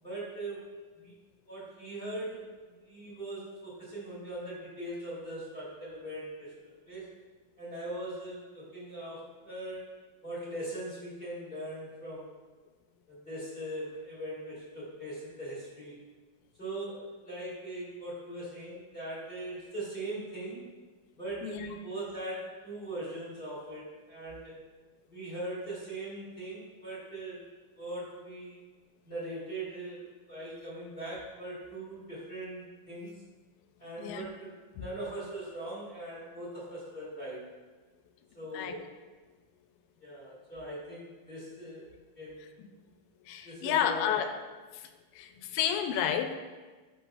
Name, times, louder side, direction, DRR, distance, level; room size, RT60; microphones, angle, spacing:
voice 1, 0.0-0.6 1.0-1.1 1.5-6.5 6.9-7.1 7.6-9.9 10.2-12.4 13.1-16.0 16.6-20.7 21.1-24.6 25.1-27.4 27.7-28.6 29.0-33.1 33.8-34.5 34.8-37.5 38.3-38.8 40.0-42.5 43.4-44.2, right 1 dB, 20° left, -8 dB, 1.6 m, -40 dB
voice 2, 21.4-21.8 34.0-34.3 34.8-34.9 38.5-38.8 42.6-42.7 43.3-44.3 44.7-46.3, left 9 dB, 85° left, 7 dB, 2.3 m, -31 dB
12.0 x 5.4 x 2.4 m, 1.3 s
omnidirectional pair, 4.1 m